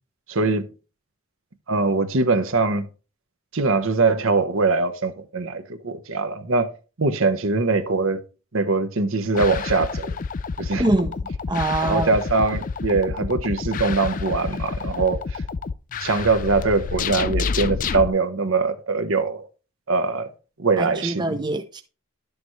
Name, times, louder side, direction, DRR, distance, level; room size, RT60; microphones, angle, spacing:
voice 1, 0.3-0.7 1.7-2.9 3.5-6.7 7.0-8.2 8.5-10.2 10.6-10.9 11.8-15.4 16.0-19.5 19.9-20.3 20.6-21.4, right 3 dB, 70° right, 1.0 m, -22 dB
sound 1, 9.3-18.1, left 5 dB, 35° left, 0.4 m, -29 dB
voice 2, 10.8-12.1 20.8-21.8, right 2 dB, 20° right, 0.6 m, -24 dB
11.0 x 6.9 x 3.2 m
head